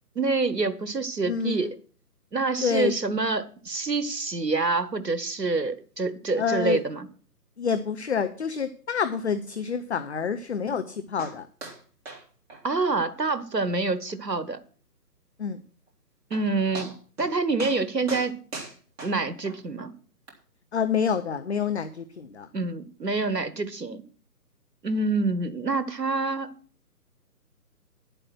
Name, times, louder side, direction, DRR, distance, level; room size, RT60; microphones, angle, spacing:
voice 1, 0.1-1.7 2.3-7.1 12.6-14.6 16.3-18.3 19.0-19.9 22.5-24.0 24.8-26.5, right 3 dB, 85° right, 1.4 m, -27 dB
voice 2, 1.3-1.7 2.6-2.9 6.4-6.8 7.6-11.5 15.4-15.6 20.7-22.5, left 6 dB, 45° left, 0.8 m, -28 dB
sound 1, 11.2-11.4 11.6-11.8 12.1-12.2 12.5-12.6 13.0-13.1 13.5-13.6 14.1-14.2 15.9-16.0 16.3-16.4 16.7-17.3 17.6-17.8 18.1-19.6 20.3-20.4, right 3 dB, 40° right, 3.5 m, -39 dB
11.0 x 7.9 x 6.1 m
figure-of-eight pair, 140°, 48 cm